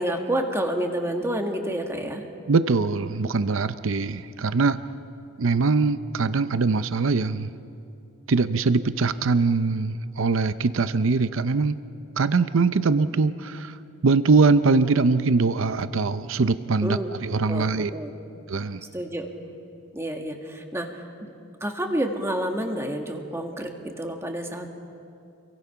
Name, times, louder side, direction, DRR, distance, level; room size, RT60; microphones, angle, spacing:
voice 1, 0.0-2.2 16.8-18.1 18.9-19.3 19.9-21.3 21.6-24.7, right 1 dB, 10° right, 3 dB, 1.6 m, -29 dB
voice 2, 2.5-4.8 5.4-7.5 8.3-11.8 12.2-13.8 14.0-17.9 18.5-18.8, right 4 dB, 65° right, 12 dB, 0.6 m, -22 dB
29.0 x 23.0 x 5.8 m, 2.6 s
head